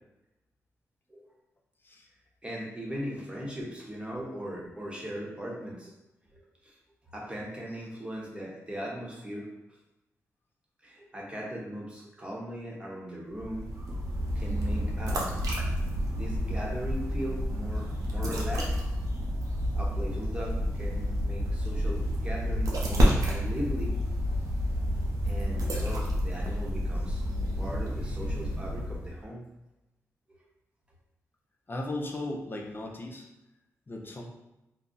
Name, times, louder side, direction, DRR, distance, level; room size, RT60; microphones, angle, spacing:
voice 1, 2.4-5.9 6.3-6.7 7.1-9.4 10.8-13.7 14.3-15.4 16.1-18.7 19.7-23.9 25.2-27.2 27.6-29.4 30.3-30.4 34.0-34.1, equal, 20° right, -3 dB, 0.9 m, -38 dB
sound 1, 13.3-29.2, equal, 80° right, 0.6 m, -29 dB
voice 2, 31.7-33.2 33.9-34.3, left 2 dB, 40° left, 1 dB, 0.5 m, -36 dB
2.3 x 2.0 x 3.8 m, 0.95 s
cardioid pair, 60°, 6 cm